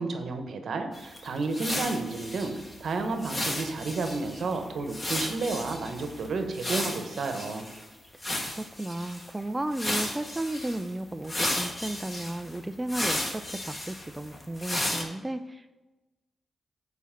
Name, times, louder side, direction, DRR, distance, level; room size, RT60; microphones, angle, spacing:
voice 1, 0.0-2.5 2.8-7.7, right 3 dB, 70° right, 6 dB, 1.0 m, -31 dB
sound 1, 0.9-7.8 8.2-9.3 9.7-10.8 11.2-15.0, left 1 dB, 25° left, 1.4 m, -34 dB
voice 2, 8.6-15.7, right 1 dB, 15° right, 8 dB, 0.4 m, -34 dB
7.2 x 4.1 x 5.7 m, 1.1 s
cardioid pair, 90°, 0 cm